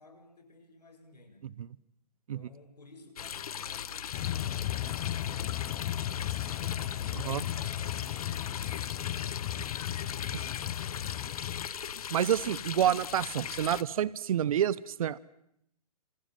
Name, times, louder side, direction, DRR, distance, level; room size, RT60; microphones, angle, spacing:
voice 1, 0.0-1.6 2.3-8.7 9.3-11.8, left 2 dB, 90° left, 6 dB, 7.6 m, -56 dB
sound 1, 3.2-13.8, left 8 dB, 65° left, 1.7 m, -39 dB
sound 2, 4.1-11.7, left 13 dB, 40° left, 1.4 m, -35 dB
Wind instrument woodwind instrument, 4.8-8.8, right 5 dB, 75° right, 4.3 m, -57 dB
voice 2, 12.1-15.2, right 10 dB, 60° right, 19 dB, 1.1 m, -28 dB
28.0 x 27.5 x 7.7 m, 0.78 s
hypercardioid pair, 135°, 20 cm